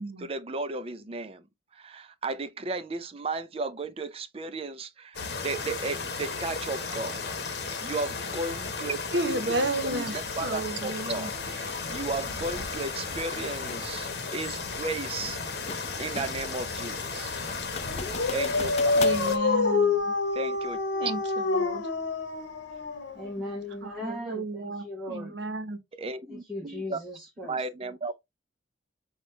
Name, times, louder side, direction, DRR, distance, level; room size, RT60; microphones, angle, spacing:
voice 1, 0.2-1.5 1.7-7.2 7.8-9.0 9.3-15.4 16.0-17.4 18.3-18.7 20.3-21.1 26.0-27.0 27.5-28.1, right 3 dB, 35° right, 0.5 m, -34 dB
sound 1, 5.1-19.4, left 4 dB, 60° left, 1.0 m, -34 dB
voice 2, 9.1-11.3 18.9-20.1 21.0-21.9 23.8-25.8, right 2 dB, 85° right, 0.9 m, -32 dB
sound 2, 13.7-13.9 15.2-16.5 16.9-17.0 17.5-19.3, left 5 dB, 35° left, 0.4 m, -39 dB
Dog, 17.8-23.5, left 3 dB, 85° left, 0.9 m, -27 dB
voice 3, 23.1-25.3 26.3-27.6, left 1 dB, ahead, 1.0 m, -38 dB
6.1 x 2.4 x 3.1 m
head